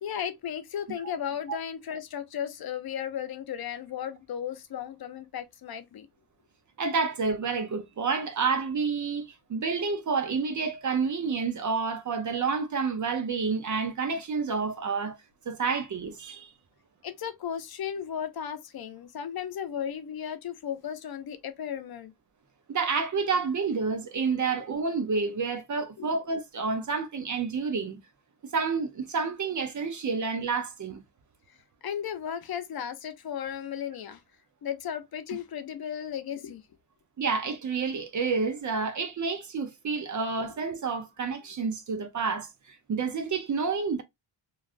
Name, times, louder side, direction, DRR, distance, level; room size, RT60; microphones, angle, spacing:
voice 1, 0.0-6.1 17.0-22.1 26.0-26.2 31.5-31.6 31.8-34.2 34.6-36.6, left 9 dB, 55° left, 0.7 m, -35 dB
voice 2, 6.8-15.2 15.5-16.5 22.7-28.0 28.5-31.0 37.2-44.0, right 5 dB, 40° right, 0.7 m, -29 dB
3.1 x 2.5 x 2.5 m
cardioid pair, 95°, 45 cm